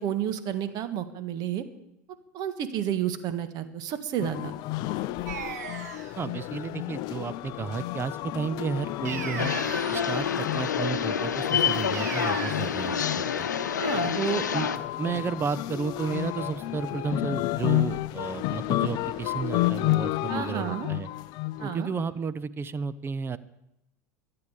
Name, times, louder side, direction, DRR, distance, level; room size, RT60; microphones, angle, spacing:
voice 1, 0.0-1.6 2.3-4.5 13.8-14.2 20.3-20.9 21.6-21.9, right 10 dB, 45° right, 10 dB, 1.6 m, -31 dB
sound 1, 4.2-22.0, left 16 dB, 45° left, 0.5 m, -31 dB
sound 2, 5.3-6.2 9.0-10.3 11.9-12.5, right 7 dB, 65° right, 1.7 m, -37 dB
voice 2, 6.2-9.5 9.9-13.5 14.2-14.7 15.0-21.1 21.6-23.4, right 5 dB, 25° right, 15 dB, 0.7 m, -32 dB
sound 3, 9.4-14.8, left 7 dB, 75° left, 0.8 m, -28 dB
22.5 x 8.7 x 5.0 m, 0.84 s
figure-of-eight pair, 80°, 10 cm